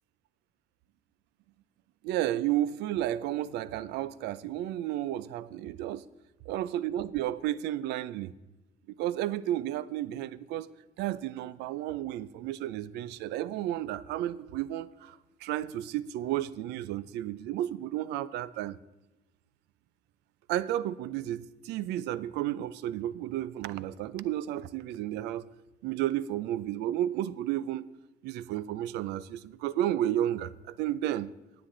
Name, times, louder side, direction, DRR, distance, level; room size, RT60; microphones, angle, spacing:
voice 1, 2.0-6.0 6.5-8.3 8.9-10.7 11.0-18.8 20.5-25.4 25.8-27.9 28.2-31.3, right 12 dB, 85° right, 18 dB, 0.5 m, -32 dB
18.5 x 7.8 x 3.9 m, 1.1 s
cardioid pair, 110°, 17 cm